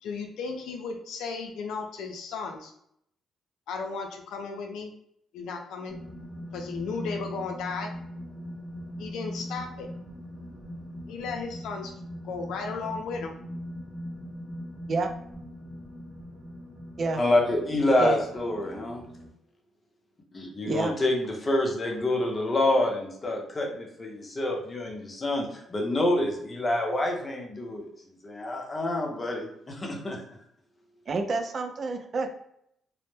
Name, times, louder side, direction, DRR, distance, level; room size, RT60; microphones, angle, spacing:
voice 1, 0.0-2.7 3.7-4.9 5.3-6.0 6.5-7.9 9.0-9.9 11.1-11.9 12.2-13.3, left 4 dB, 85° left, 3 dB, 0.4 m, -35 dB
sound 1, 5.9-19.3, equal, 5° right, 0.7 m, -40 dB
voice 2, 17.2-19.0 20.3-27.9 28.2-30.2, left 1 dB, 30° left, 1 dB, 0.6 m, -27 dB
voice 3, 17.9-18.2 20.6-20.9 31.1-32.4, right 3 dB, 45° right, 6 dB, 0.3 m, -29 dB
2.1 x 2.0 x 3.0 m, 0.72 s
cardioid pair, 90°, 0 cm